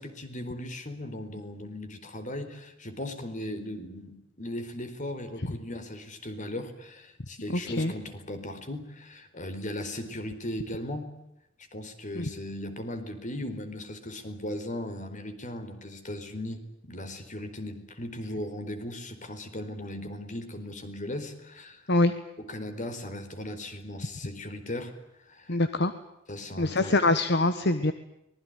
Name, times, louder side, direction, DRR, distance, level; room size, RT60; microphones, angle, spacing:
voice 1, 0.0-11.1 11.7-21.8 22.4-24.9 25.2-25.6 26.3-27.0, left 1 dB, 40° left, 9 dB, 4.3 m, -37 dB
voice 2, 7.5-7.9 12.2-12.3 21.9-22.1 25.5-25.9 26.6-27.9, left 2 dB, 60° left, 11 dB, 1.4 m, -24 dB
25.0 x 20.5 x 9.3 m, 0.85 s
head